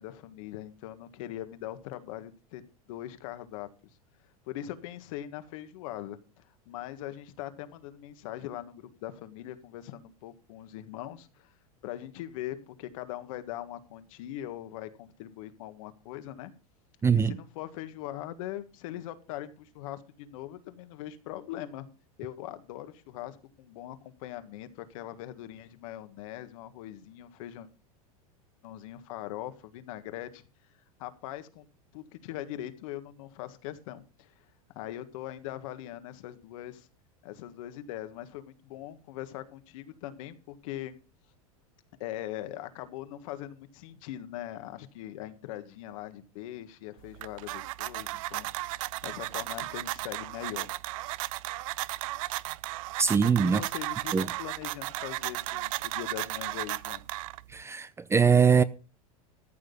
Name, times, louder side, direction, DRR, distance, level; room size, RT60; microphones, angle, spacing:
voice 1, 0.0-2.6 2.9-3.7 4.5-11.5 11.8-16.5 17.1-21.9 22.2-27.7 28.6-30.4 31.0-31.7 31.9-34.4 34.7-36.9 37.2-40.9 42.0-50.7 53.4-57.0, left 13 dB, 65° left, 1.6 m, -41 dB
voice 2, 17.0-17.3 53.0-53.6 54.1-54.3 57.5-58.6, right 6 dB, 15° right, 0.5 m, -22 dB
sound 1, 47.0-57.6, right 19 dB, 65° right, 0.5 m, -35 dB
14.0 x 6.6 x 5.4 m
hypercardioid pair, 110°, 19 cm